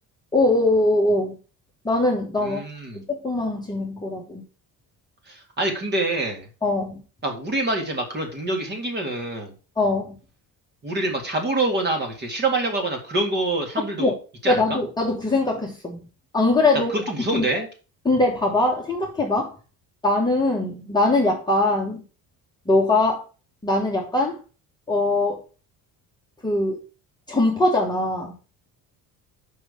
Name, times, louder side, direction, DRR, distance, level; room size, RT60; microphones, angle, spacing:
voice 1, 0.3-1.3 1.8-2.6 2.9-4.4 6.6-7.0 9.8-10.1 13.8-14.1 14.5-16.0 16.3-16.9 17.3-17.4 18.0-19.5 20.0-22.0 22.7-23.2 23.6-24.4 24.9-25.4 26.4-26.8 27.3-28.3, left 2 dB, 10° left, 1.3 m, -21 dB
voice 2, 2.4-3.0 5.3-6.5 7.2-9.5 10.8-14.1 14.4-14.8 16.9-17.7, right 2 dB, 25° right, 2.1 m, -26 dB
5.7 x 5.6 x 6.7 m
cardioid pair, 170°, 39 cm